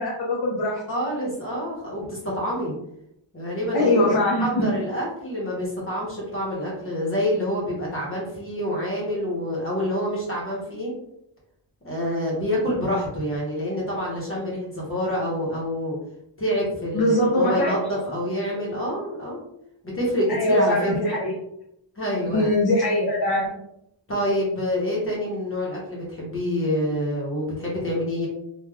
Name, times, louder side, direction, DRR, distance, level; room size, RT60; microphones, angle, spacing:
voice 1, 0.0-0.8 3.7-4.7 16.9-17.8 20.3-21.3 22.3-23.6, left 1 dB, 50° left, -3 dB, 0.6 m, -22 dB
voice 2, 0.9-2.7 3.3-10.9 11.8-16.0 16.4-19.4 19.8-21.1 22.0-22.5 24.1-28.3, equal, 25° left, -5 dB, 0.9 m, -27 dB
3.3 x 2.3 x 2.3 m, 0.78 s
wide cardioid pair, 175°, 49 cm